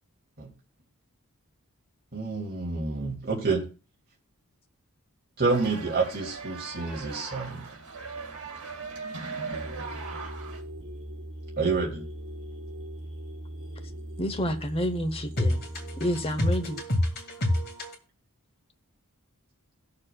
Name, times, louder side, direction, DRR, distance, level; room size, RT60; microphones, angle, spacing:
voice 1, 2.1-3.6 5.4-7.7 11.6-12.0, right 4 dB, 45° right, 2.5 m, -28 dB
sound 1, 5.4-10.6, right 4 dB, 85° right, 2.3 m, -39 dB
sound 2, 9.5-16.8, right 1 dB, 60° right, 3.8 m, -40 dB
voice 2, 14.2-15.6 16.0-16.8, equal, 25° left, 0.8 m, -29 dB
voice 3, 15.4-18.0, left 1 dB, 45° left, 2.2 m, -28 dB
17.5 x 6.7 x 2.3 m
head